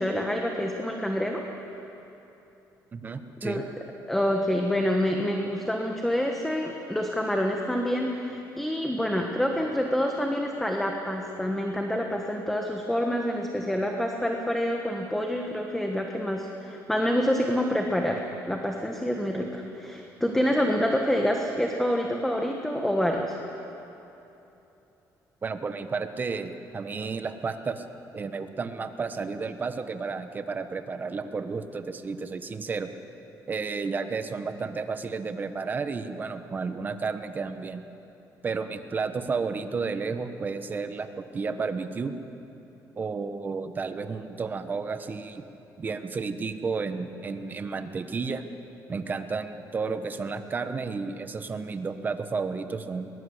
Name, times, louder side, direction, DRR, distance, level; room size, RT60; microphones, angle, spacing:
voice 1, 0.0-1.4 3.4-3.6 4.1-23.4, equal, 5° left, 2 dB, 1.3 m, -27 dB
voice 2, 2.9-3.6 25.4-27.8 28.1-32.9 33.5-37.8 38.4-42.1 43.0-45.4 45.8-48.4 48.9-53.1, right 4 dB, 25° right, 9 dB, 1.1 m, -32 dB
22.0 x 20.0 x 8.0 m, 3.0 s
cardioid pair, 150°, 7 cm